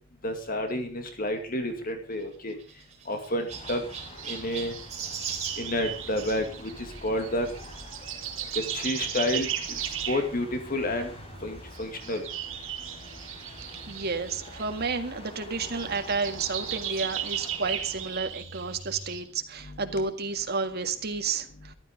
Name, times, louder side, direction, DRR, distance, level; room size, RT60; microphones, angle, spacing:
voice 1, 0.2-2.5 3.1-3.8 4.3-4.8 5.6-7.5 8.5-11.1 11.4-12.2 19.7-19.8, left 1 dB, 45° left, 5 dB, 2.2 m, -30 dB
Chirp tweet, 2.1-6.4 7.6-7.8 8.5-8.6 8.8-8.9 10.1-10.2, right 7 dB, 35° right, 4.0 m, -39 dB
sound 1, 3.5-18.2, left 1 dB, 30° left, 5.2 m, -46 dB
sound 2, 4.0-19.2, right 10 dB, 85° right, 3.2 m, -37 dB
voice 2, 13.9-21.7, right 4 dB, 55° right, 6 dB, 1.9 m, -31 dB
14.0 x 13.0 x 5.1 m, 0.39 s
head